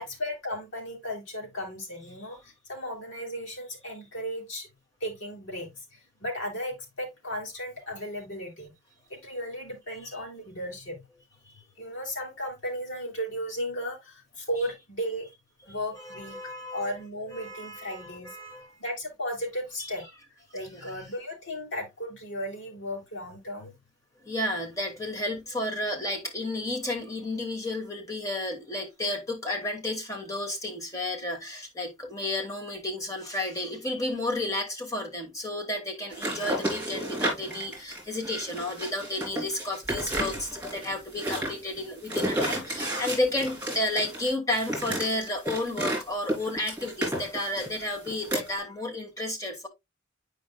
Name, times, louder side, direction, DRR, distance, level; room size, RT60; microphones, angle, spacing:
voice 1, 0.0-4.7 5.0-8.7 9.1-11.0 11.8-15.3 15.7-16.4 16.7-18.4 18.8-20.0 20.5-23.7, equal, 65° left, 2.9 m, -35 dB
voice 2, 9.9-10.2 11.4-11.6 15.6-16.9 17.3-18.8 19.8-19.9 20.7-20.9 24.2-49.7, left 1 dB, 15° left, 1.4 m, -32 dB
sound 1, 36.1-46.0 46.3-48.6, right 1 dB, 10° right, 3.1 m, -32 dB
9.1 x 5.1 x 2.2 m
head